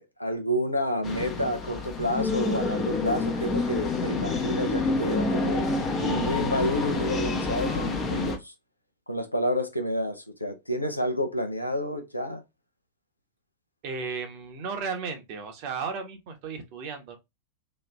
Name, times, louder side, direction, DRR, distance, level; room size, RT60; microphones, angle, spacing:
voice 1, 0.0-5.7 6.0-8.5 9.1-12.4, equal, 85° left, 0.7 m, -29 dB
sound 1, 1.0-8.4, left 3 dB, 25° left, 0.9 m, -28 dB
voice 2, 13.8-17.2, right 5 dB, 45° right, 1.1 m, -34 dB
3.1 x 2.8 x 3.5 m
figure-of-eight pair, 90°, 0 cm